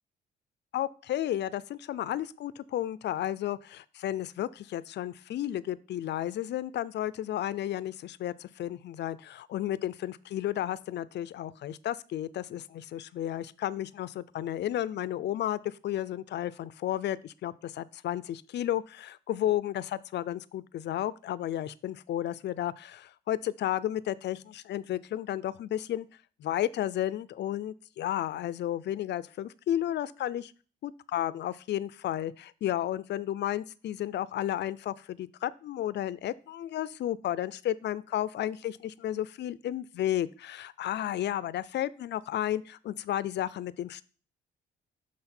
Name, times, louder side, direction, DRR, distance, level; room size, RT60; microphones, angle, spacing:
voice 1, 0.7-26.1 26.4-30.5 30.8-44.0, left 12 dB, 60° left, 19 dB, 0.4 m, -33 dB
6.1 x 5.9 x 4.3 m, 0.39 s
cardioid pair, 90°, 20 cm